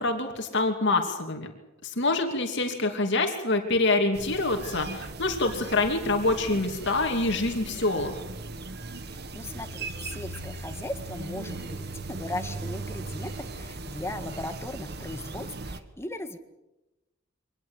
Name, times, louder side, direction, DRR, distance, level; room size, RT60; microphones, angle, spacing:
voice 1, 0.0-1.5 1.8-8.2, left 2 dB, 60° left, 3 dB, 2.8 m, -26 dB
sound 1, 4.1-15.8, right 2 dB, 55° right, 1.6 m, -38 dB
voice 2, 9.0-16.4, left 1 dB, 15° left, 7 dB, 1.8 m, -38 dB
25.0 x 19.0 x 8.2 m, 0.99 s
head